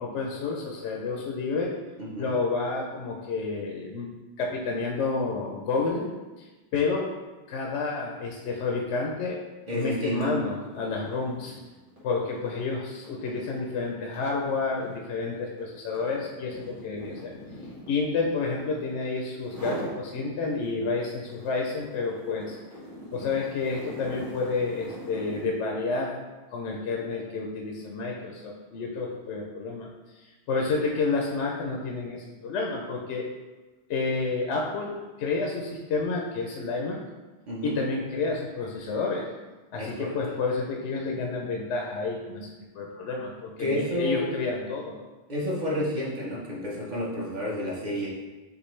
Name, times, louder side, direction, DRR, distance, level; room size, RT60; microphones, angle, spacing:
voice 1, 0.0-1.8 2.2-4.1 4.4-6.1 6.4-7.1 7.5-9.4 9.7-11.6 12.0-17.3 17.9-22.6 23.1-26.2 26.5-29.9 30.2-33.3 33.9-37.0 37.6-39.3 39.7-42.5 42.7-45.0, left 4 dB, 75° left, 0 dB, 0.9 m, -30 dB
voice 2, 2.0-2.3 9.7-10.3 37.5-37.7 39.8-40.2 43.6-44.3 45.3-48.1, equal, 40° right, -5 dB, 1.1 m, -30 dB
sound 1, 10.0-10.2 10.5-19.0 19.4-20.0 20.4-25.6, equal, 80° right, 1.7 m, -42 dB
6.8 x 2.5 x 3.1 m, 1.2 s
omnidirectional pair, 1.2 m